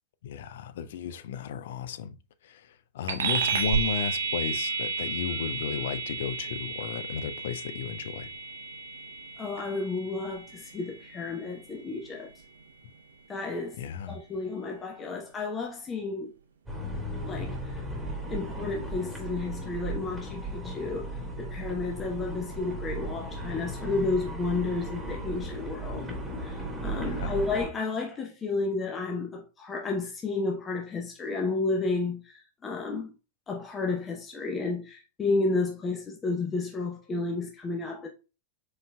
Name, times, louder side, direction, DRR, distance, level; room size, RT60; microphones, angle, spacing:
voice 1, 0.2-2.2 2.4-8.3 13.8-14.2 27.0-27.3, left 8 dB, 60° left, 0.4 m, -34 dB
sound 1, 3.1-12.9, right 5 dB, 65° right, 0.6 m, -33 dB
voice 2, 9.4-12.3 13.3-13.8 14.1-16.3 17.2-17.8 18.3-26.1 26.4-33.1 33.5-38.1, left 3 dB, 20° left, 0.7 m, -32 dB
sound 2, 16.7-27.7, right 1 dB, 5° right, 1.8 m, -36 dB
5.0 x 4.0 x 2.2 m
figure-of-eight pair, 90°, 0 cm